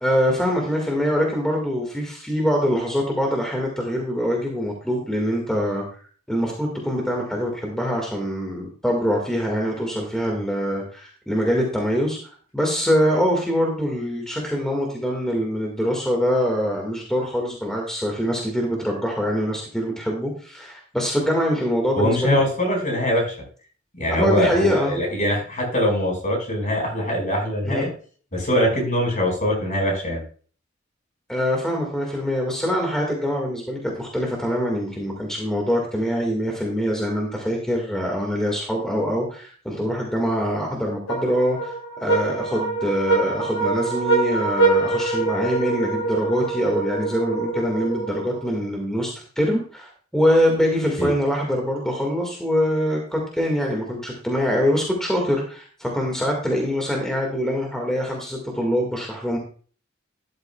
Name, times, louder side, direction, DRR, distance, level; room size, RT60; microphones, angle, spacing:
voice 1, 0.0-6.0 6.3-12.2 12.5-22.4 24.2-24.9 27.6-27.8 31.3-41.7 42.0-59.4, equal, 5° left, 0 dB, 1.8 m, -24 dB
voice 2, 22.0-23.4 23.9-27.9 28.3-30.2 51.0-51.1, equal, 40° left, 0 dB, 5.0 m, -22 dB
sound 1, 41.1-48.6, right 3 dB, 85° left, 2.5 m, -24 dB
12.5 x 10.5 x 2.3 m, 0.43 s
head